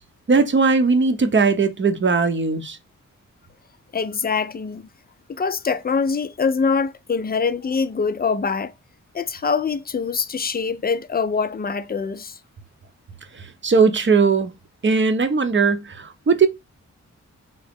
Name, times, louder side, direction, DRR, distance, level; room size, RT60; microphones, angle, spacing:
voice 1, 0.3-2.8 13.3-14.5 14.8-16.5, right 4 dB, 35° right, 0.7 m, -19 dB
voice 2, 3.9-4.9 5.3-8.7 9.1-12.4, left 5 dB, 30° left, 0.5 m, -24 dB
3.8 x 2.1 x 3.4 m
cardioid pair, 50°, 32 cm